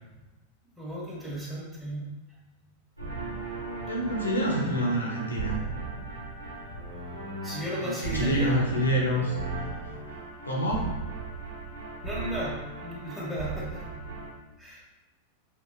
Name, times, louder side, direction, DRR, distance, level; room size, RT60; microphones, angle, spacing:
voice 1, 0.8-2.0 7.4-8.5 12.0-12.5 12.8-13.8 14.6-14.8, equal, ahead, -7 dB, 1.3 m, -34 dB
sound 1, 3.0-14.3, right 3 dB, 85° right, 1.5 m, -37 dB
voice 2, 3.9-5.6 7.8-9.4 10.4-10.9, equal, 75° left, -1 dB, 1.1 m, -27 dB
5.8 x 3.7 x 2.5 m, 1.1 s
figure-of-eight pair, 90°, 0 cm